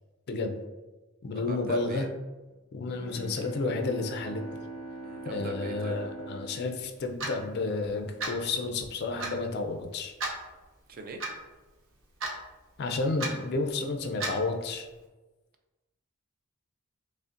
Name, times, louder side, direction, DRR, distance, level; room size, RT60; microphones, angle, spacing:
voice 1, 0.3-0.6 1.2-2.1 2.7-4.4 5.2-10.1 12.8-14.9, left 3 dB, 50° left, 5 dB, 0.4 m, -31 dB
voice 2, 1.3-2.1 5.0-6.0 10.9-11.2, right 3 dB, 40° right, 5 dB, 0.4 m, -40 dB
Bowed string instrument, 2.8-7.8, right 2 dB, 5° right, 1.0 m, -43 dB
Clock, 7.2-7.4 8.2-8.4 9.2-9.4 10.2-10.4 11.2-11.3 12.2-12.4 13.2-13.3 14.2-14.4, right 2 dB, 60° right, 0.7 m, -32 dB
5.1 x 2.1 x 2.5 m, 1.2 s
head